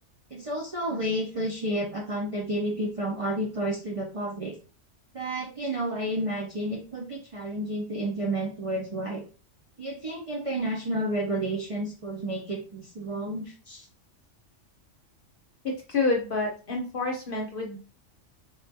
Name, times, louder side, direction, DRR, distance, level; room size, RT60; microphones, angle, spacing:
voice 1, 0.3-4.5 5.1-9.2 9.8-13.9, right 1 dB, 50° right, -1 dB, 0.4 m, -31 dB
voice 2, 15.9-17.8, left 3 dB, 50° left, 0 dB, 0.8 m, -28 dB
3.5 x 2.3 x 2.6 m, 0.36 s
omnidirectional pair, 1.3 m